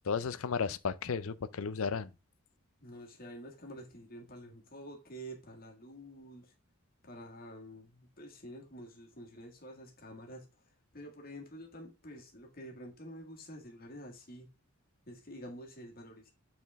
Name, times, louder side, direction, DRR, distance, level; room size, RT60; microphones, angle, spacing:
voice 1, 0.0-2.1, left 5 dB, 70° left, 0.5 m, -34 dB
voice 2, 2.8-6.5 7.0-10.5 10.9-14.5 15.1-16.3, equal, 40° left, 1.8 m, -48 dB
8.2 x 4.3 x 3.5 m
head